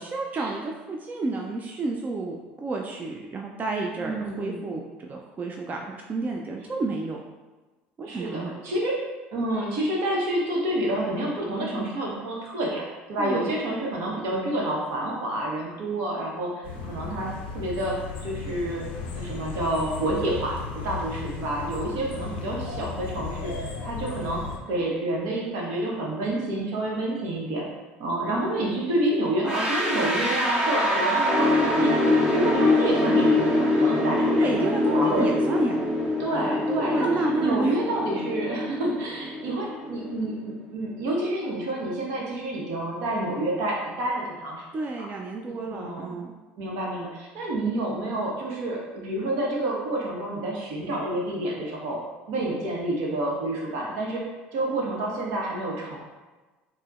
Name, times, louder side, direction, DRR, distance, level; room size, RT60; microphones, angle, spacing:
voice 1, 0.0-7.2 8.0-8.5 13.2-13.5 34.4-35.8 36.7-37.8 44.7-46.3, right 3 dB, 30° right, 1 dB, 0.3 m, -30 dB
voice 2, 4.0-4.7 8.0-9.0 9.3-18.8 19.2-24.4 24.7-27.6 28.0-32.0 32.3-34.5 34.9-35.3 36.2-44.6 45.0-45.1 45.7-46.2 46.6-52.0 52.3-54.2 54.5-56.0, right 1 dB, 70° right, -2 dB, 0.9 m, -28 dB
sound 1, 16.6-24.6, left 5 dB, 85° left, 0.4 m, -35 dB
sound 2, 29.4-40.3, left 2 dB, 10° right, 0.8 m, -24 dB
4.4 x 2.1 x 2.3 m, 1.2 s
hypercardioid pair, 75°, 6 cm